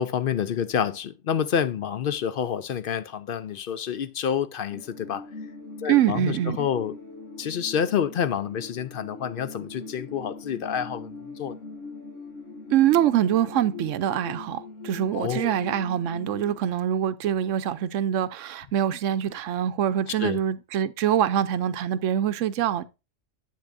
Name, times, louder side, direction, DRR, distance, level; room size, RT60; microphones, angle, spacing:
voice 1, 0.0-5.3 5.8-6.9 7.4-11.1 11.4-11.6 15.1-15.6 20.2-20.4, left 8 dB, 60° left, 0.6 m, -28 dB
sound 1, 4.7-16.6, left 3 dB, 80° left, 2.0 m, -41 dB
voice 2, 5.8-6.7 12.7-22.8, right 10 dB, 85° right, 1.0 m, -24 dB
10.5 x 7.8 x 2.5 m
omnidirectional pair, 1.3 m